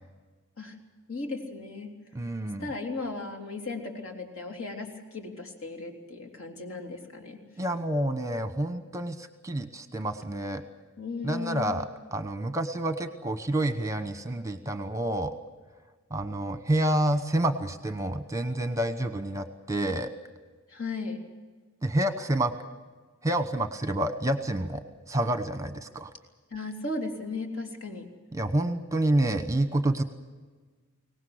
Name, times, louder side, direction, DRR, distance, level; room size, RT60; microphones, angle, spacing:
voice 1, 1.1-1.9 2.6-7.4 11.0-11.7 20.7-21.2 26.5-28.1, left 3 dB, 70° left, 3 dB, 3.6 m, -36 dB
voice 2, 2.1-2.7 7.6-10.6 11.2-15.3 16.1-20.1 21.8-22.5 23.2-24.8 25.1-26.1 28.3-30.0, right 1 dB, 15° right, 10 dB, 1.0 m, -28 dB
24.0 x 18.5 x 8.0 m, 1.4 s
head